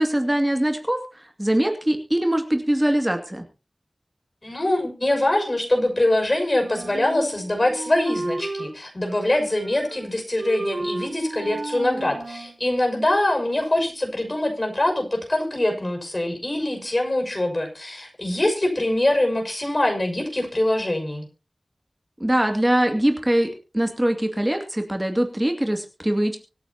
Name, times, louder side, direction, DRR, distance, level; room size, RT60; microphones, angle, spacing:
voice 1, 0.0-3.4 22.2-26.4, right 1 dB, 20° right, 4 dB, 2.4 m, -22 dB
voice 2, 4.4-21.2, left 1 dB, 40° left, 4 dB, 6.1 m, -23 dB
Wind instrument woodwind instrument, 6.6-8.7 9.1-10.1 10.4-12.6, right 2 dB, 75° right, 3.7 m, -33 dB
25.0 x 8.9 x 2.9 m, 0.31 s
wide cardioid pair, 45°, 0 cm